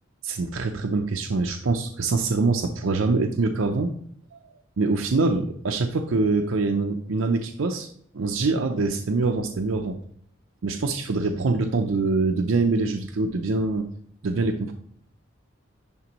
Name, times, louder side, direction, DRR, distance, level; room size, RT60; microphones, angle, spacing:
voice 1, 0.2-3.9 4.3-4.4 4.8-7.9 8.1-10.0 10.6-13.9 14.2-14.7, right 3 dB, 85° right, 4 dB, 0.6 m, -24 dB
11.0 x 3.7 x 3.0 m, 0.64 s
head